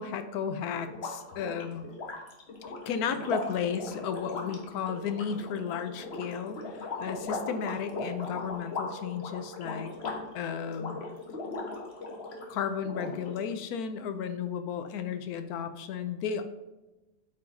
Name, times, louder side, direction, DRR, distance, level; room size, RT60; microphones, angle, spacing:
voice 1, 0.0-1.9 2.9-9.9 10.3-11.0 12.5-16.5, left 7 dB, 70° left, 9 dB, 1.1 m, -34 dB
sound 1, 0.9-12.5 12.8-13.7, left 3 dB, 45° left, 1.1 m, -38 dB
8.2 x 4.7 x 2.6 m, 1.1 s
omnidirectional pair, 1.7 m